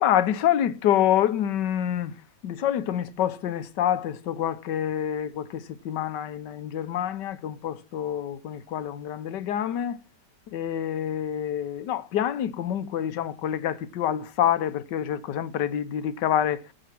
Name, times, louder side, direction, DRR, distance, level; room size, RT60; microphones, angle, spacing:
voice 1, 0.0-2.1 2.4-10.0 10.5-16.6, left 10 dB, 85° left, 1.5 m, -27 dB
15.0 x 9.3 x 5.9 m
omnidirectional pair, 1.8 m